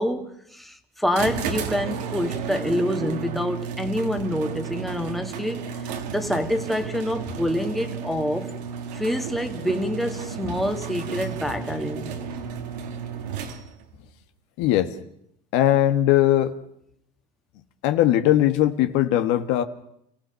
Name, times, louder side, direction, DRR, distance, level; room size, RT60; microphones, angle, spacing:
voice 1, 0.0-8.6 8.9-12.3, equal, ahead, 1.7 m, -27 dB
sound 1, 1.1-13.9, right 7 dB, 85° right, 2.4 m, -33 dB
voice 2, 14.6-14.9 15.5-16.5 17.8-19.6, left 13 dB, 70° left, 1.5 m, -19 dB
29.0 x 16.0 x 5.8 m
supercardioid pair, 115°, 20 cm